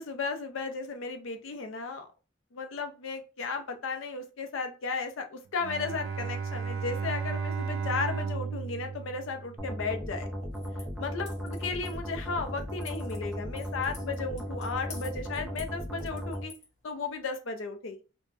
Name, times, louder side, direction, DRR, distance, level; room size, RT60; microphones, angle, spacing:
voice 1, 0.0-2.1 2.5-10.3 11.0-16.5 16.8-18.0, left 4 dB, 80° left, 6 dB, 0.5 m, -35 dB
Bowed string instrument, 5.6-10.0, right 5 dB, 80° right, 0.3 m, -34 dB
sound 1, 9.6-16.4, equal, ahead, 0.4 m, -36 dB
sound 2, 10.4-17.2, left 3 dB, 35° left, 0.8 m, -53 dB
3.1 x 2.1 x 2.5 m, 0.34 s
head